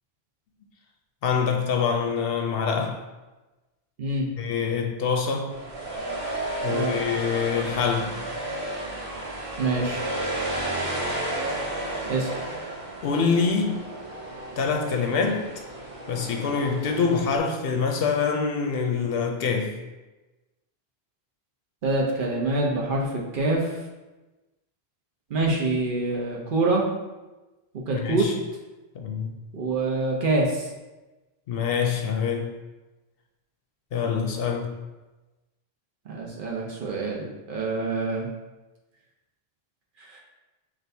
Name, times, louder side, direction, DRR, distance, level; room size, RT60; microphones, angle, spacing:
voice 1, 1.2-3.0 4.4-5.6 6.6-8.2 13.0-13.8 14.6-15.5 16.1-19.8 27.9-28.4 28.9-29.3 31.5-32.5 33.9-34.7, left 5 dB, 70° left, 3 dB, 0.7 m, -25 dB
sound 1, 5.5-17.4, right 1 dB, 75° right, 1.4 m, -32 dB
voice 2, 9.6-10.0 12.1-12.3 21.8-23.7 25.3-26.9 27.9-28.3 29.5-30.7 36.1-38.3 40.0-40.2, right 2 dB, 60° right, -2 dB, 0.8 m, -25 dB
6.0 x 2.5 x 2.7 m, 1.1 s
omnidirectional pair, 1.1 m